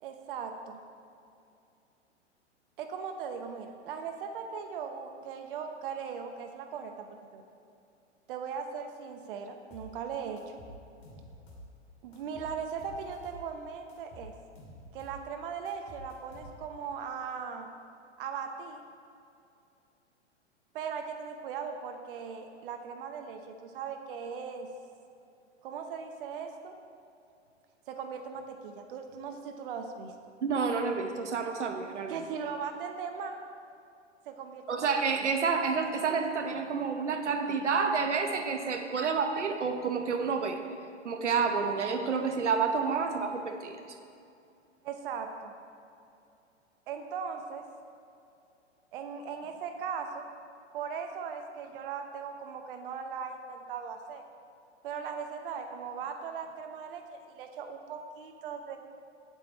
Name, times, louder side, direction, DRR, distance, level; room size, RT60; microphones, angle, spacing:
voice 1, 0.0-0.8 2.8-7.4 8.3-10.6 12.0-14.3 14.9-17.7 18.2-18.8 20.7-24.7 25.6-26.8 27.9-30.3 32.1-33.4 34.3-34.9 39.0-39.1 44.8-45.5 46.9-47.6 48.9-50.3 50.7-54.2 54.8-58.8, right 6 dB, 50° right, 5 dB, 0.8 m, -39 dB
sound 1, 9.7-10.0 10.4-11.7 12.1-13.5 13.9-15.3 15.7-16.8, equal, 35° left, 2.4 m, -50 dB
voice 2, 30.4-32.2 34.7-40.6 41.0-43.8, right 5 dB, 75° right, 6 dB, 0.9 m, -29 dB
8.7 x 8.0 x 4.3 m, 2.6 s
figure-of-eight pair, 105°, 35 cm